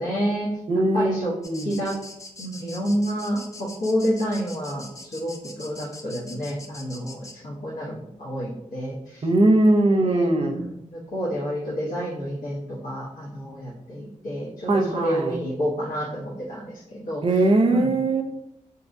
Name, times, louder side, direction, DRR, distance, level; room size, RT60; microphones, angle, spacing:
voice 1, 0.0-0.5 0.9-1.3 1.6-2.0 2.4-9.3 10.0-17.4 17.7-17.9, equal, 85° left, -8 dB, 0.9 m, -29 dB
voice 2, 0.7-1.7 9.2-10.6 14.7-15.4 17.2-18.2, right 2 dB, 40° right, 4 dB, 0.6 m, -20 dB
sound 1, 1.4-7.3, left 2 dB, 25° left, 0.5 m, -43 dB
3.6 x 2.8 x 2.5 m, 0.83 s
cardioid pair, 60°, 14 cm